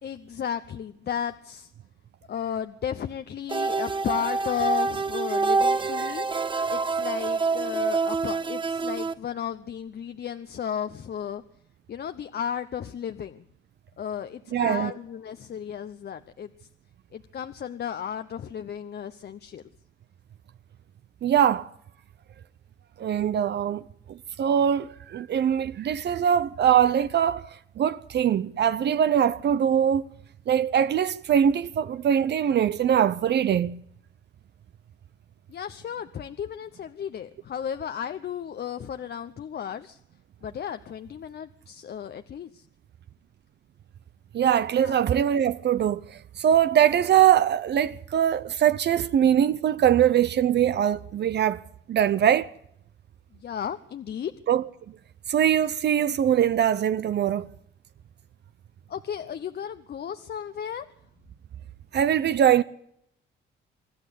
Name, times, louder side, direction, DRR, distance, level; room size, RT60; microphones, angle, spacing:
voice 1, 0.0-1.7 2.3-6.3 6.7-11.4 11.9-13.4 14.0-16.7 17.1-19.6 35.5-40.0 40.4-42.6 44.8-44.9 53.3-54.3 58.9-60.8, left 8 dB, 55° left, 1.0 m, -34 dB
sound 1, 3.5-9.1, right 4 dB, 25° right, 1.1 m, -26 dB
voice 2, 14.5-14.9 21.2-21.7 23.0-23.8 24.1-30.0 30.5-33.8 44.3-51.6 51.9-52.5 54.5-54.6 55.3-57.5 61.9-62.6, right 9 dB, 60° right, 0.8 m, -22 dB
25.5 x 12.0 x 8.4 m
cardioid pair, 90°, 20 cm